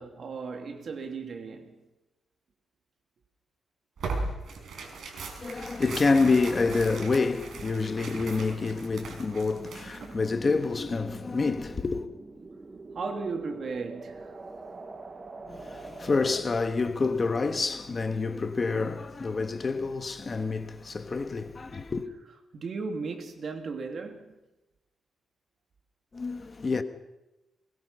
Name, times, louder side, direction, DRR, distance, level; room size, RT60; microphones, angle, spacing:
voice 1, 0.0-1.8 4.9-5.0 12.9-14.4 22.5-24.4, right 4 dB, 55° right, 2.9 m, -36 dB
Tearing, 4.0-10.1, right 3 dB, 70° right, 5.6 m, -38 dB
voice 2, 5.4-12.1 15.4-22.1 26.1-26.8, left 4 dB, 30° left, 1.5 m, -28 dB
sound 1, 9.5-16.4, right 3 dB, 30° right, 1.6 m, -44 dB
22.5 x 22.0 x 5.7 m
cardioid pair, 125°, 0 cm